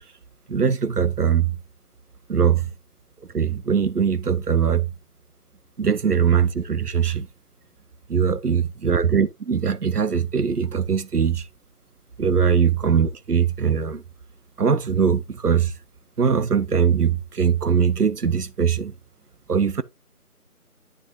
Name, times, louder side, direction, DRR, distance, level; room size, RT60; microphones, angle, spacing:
voice 1, 0.5-1.6 2.3-2.6 3.3-4.9 5.8-7.3 8.1-11.5 12.2-14.0 14.6-15.7 16.2-18.9 19.5-19.8, right 7 dB, 85° right, 0.9 m, -21 dB
9.2 x 6.4 x 2.6 m
figure-of-eight pair, 175°, 45 cm